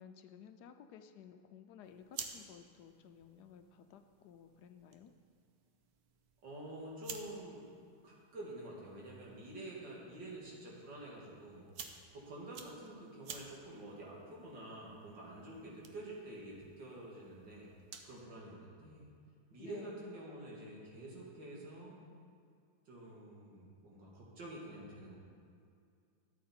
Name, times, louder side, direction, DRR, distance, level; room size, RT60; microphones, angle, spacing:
voice 1, 0.0-5.1 19.6-20.0, left 8 dB, 75° left, 8 dB, 1.1 m, -55 dB
sound 1, 1.8-18.2, right 6 dB, 65° right, 1.2 m, -54 dB
voice 2, 6.4-7.7 8.0-11.8 12.1-17.7 18.0-19.1 19.5-22.0 22.9-25.2, right 1 dB, 80° right, -4 dB, 2.8 m, -48 dB
13.0 x 8.3 x 4.4 m, 2.3 s
omnidirectional pair, 1.9 m